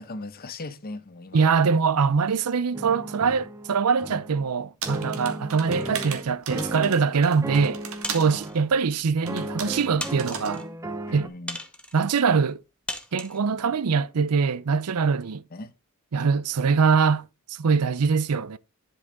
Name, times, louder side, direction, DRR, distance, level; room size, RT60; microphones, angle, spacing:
voice 1, 0.0-1.6 6.5-7.2 11.1-11.6 15.5-15.7, left 2 dB, 45° left, 0.9 m, -39 dB
voice 2, 1.3-7.8 8.1-10.7 11.1-11.3 11.9-12.6 13.1-15.4 16.1-18.6, right 5 dB, 85° right, 0.6 m, -23 dB
sound 1, 2.7-4.5 4.8-7.1 7.4-8.7 9.2-11.3, right 1 dB, 15° right, 0.8 m, -35 dB
sound 2, 4.8-8.3 9.3-9.8 10.2-10.5, right 7 dB, 65° right, 1.8 m, -36 dB
sound 3, 8.0-8.6 9.3-9.4 10.0-10.7 11.5-12.0 12.9-13.4, left 1 dB, 5° left, 1.2 m, -36 dB
11.0 x 5.5 x 3.9 m
head